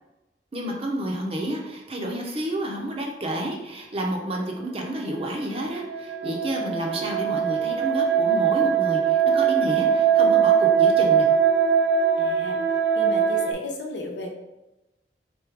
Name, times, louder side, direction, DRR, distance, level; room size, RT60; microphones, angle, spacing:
voice 1, 0.5-11.3, right 1 dB, 35° right, 0 dB, 0.7 m, -30 dB
sound 1, 5.2-13.5, right 7 dB, 75° right, 0.5 m, -21 dB
voice 2, 12.2-12.6 13.0-14.3, left 2 dB, 80° left, 1 dB, 0.8 m, -34 dB
4.0 x 3.4 x 3.5 m, 0.98 s
head